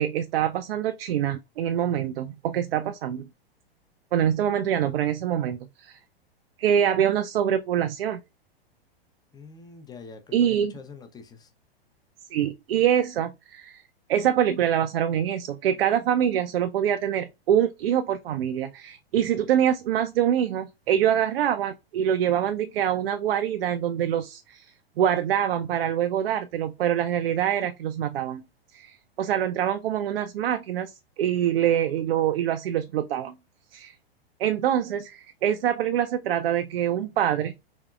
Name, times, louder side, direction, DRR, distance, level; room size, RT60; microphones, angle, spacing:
voice 1, 0.0-3.3 4.1-6.0 6.6-8.2 10.3-10.7 12.3-13.8 14.1-28.4 28.7-33.3 33.7-34.0 34.4-37.5, right 10 dB, 65° right, 0.5 m, -25 dB
voice 2, 9.3-11.5, left 5 dB, 15° left, 0.6 m, -45 dB
3.5 x 3.5 x 2.4 m
hypercardioid pair, 105°, 31 cm